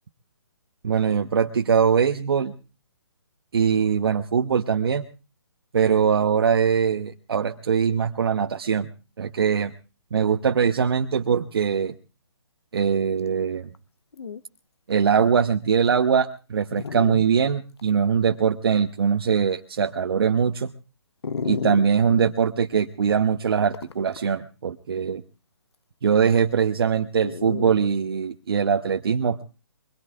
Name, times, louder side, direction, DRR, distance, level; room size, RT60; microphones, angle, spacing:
voice 1, 0.8-2.6 3.5-5.1 5.7-8.9 9.2-9.7 10.1-11.9 12.7-13.7 14.9-20.7 21.4-25.2 26.0-29.4, right 6 dB, 60° right, 5 dB, 1.0 m, -22 dB
Dog, 13.7-13.8 14.1-14.4 15.1-15.2 15.8-15.9 16.7-17.3 17.8-17.9 21.2-22.3 23.7-24.3 27.2-27.7, left 5 dB, 70° left, 1.0 m, -32 dB
24.0 x 21.5 x 2.4 m, 0.34 s
figure-of-eight pair, 140°, 14 cm